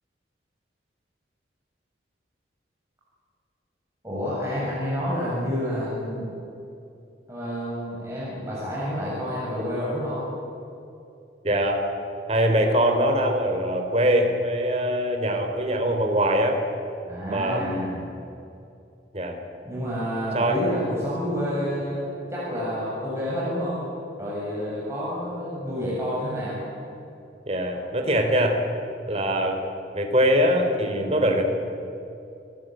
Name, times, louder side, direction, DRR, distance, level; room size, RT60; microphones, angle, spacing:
voice 1, 4.0-6.3 7.3-10.3 17.1-18.0 19.6-22.0 22.3-23.8 24.2-26.6 30.9-31.2, equal, 15° right, -7 dB, 7.1 m, -29 dB
voice 2, 11.4-11.8 12.3-16.6 17.3-17.9 19.1-19.4 20.3-20.6 27.5-28.6 29.1-29.6 29.9-31.4, equal, 35° right, 3 dB, 3.5 m, -22 dB
29.0 x 17.5 x 9.1 m, 2.6 s
head